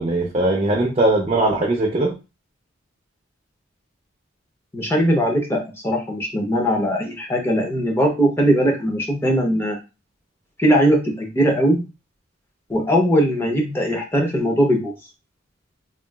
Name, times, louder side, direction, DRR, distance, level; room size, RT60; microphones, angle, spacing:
voice 1, 0.0-2.1, right 2 dB, 30° right, -1 dB, 0.5 m, -20 dB
voice 2, 4.7-9.8 10.6-11.8 12.7-14.9, equal, 10° left, 1 dB, 0.7 m, -20 dB
3.7 x 2.3 x 2.3 m, 0.28 s
head